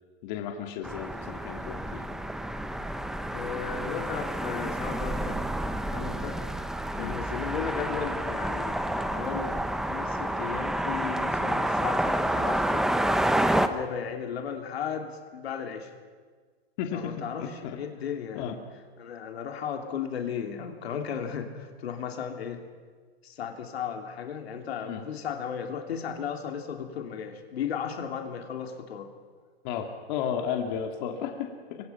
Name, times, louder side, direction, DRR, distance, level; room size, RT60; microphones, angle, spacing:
voice 1, 0.2-2.1 7.0-7.1 16.8-17.1 17.4-17.8 18.3-18.6 24.9-25.0 29.6-31.5, left 8 dB, 45° left, 3 dB, 2.5 m, -33 dB
sound 1, 0.8-13.7, right 1 dB, ahead, 0.8 m, -29 dB
voice 2, 3.3-5.4 5.9-6.4 6.9-9.6 9.9-12.9 13.7-15.9 16.9-18.6 19.0-22.6 23.2-29.1, left 7 dB, 80° left, 4 dB, 3.2 m, -35 dB
25.5 x 24.5 x 5.8 m, 1.5 s
hypercardioid pair, 140°, 31 cm